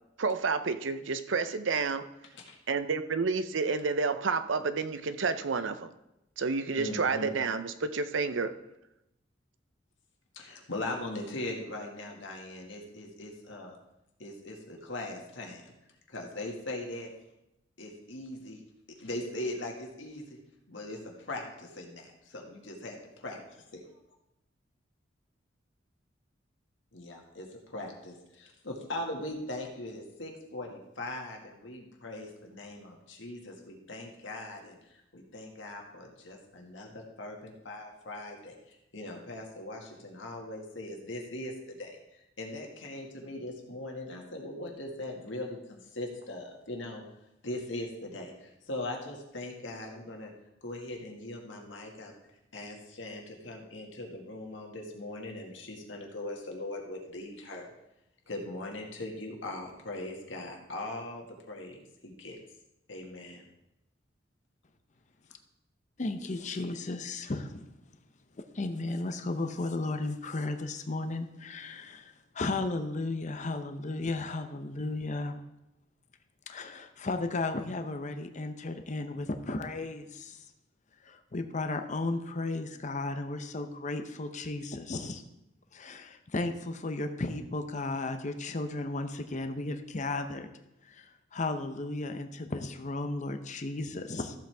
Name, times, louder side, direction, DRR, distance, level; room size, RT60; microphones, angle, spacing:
voice 1, 0.2-2.0 2.7-5.9 6.4-8.5, right 4 dB, 85° right, 11 dB, 0.6 m, -30 dB
voice 2, 6.8-7.3 10.3-13.8 14.2-15.6 16.1-17.1 17.8-18.6 18.9-20.4 20.7-22.1 22.3-23.0 23.2-23.4 26.9-47.0 47.4-50.3 50.6-52.1 52.5-57.7 58.3-62.4 62.9-63.4, left 1 dB, 80° left, 1 dB, 1.9 m, -40 dB
voice 3, 66.0-67.7 68.5-75.4 76.5-80.4 81.0-85.2 85.7-90.5 90.9-91.1 91.3-94.3, left 2 dB, 40° left, 7 dB, 0.7 m, -34 dB
14.0 x 7.6 x 3.5 m, 0.88 s
head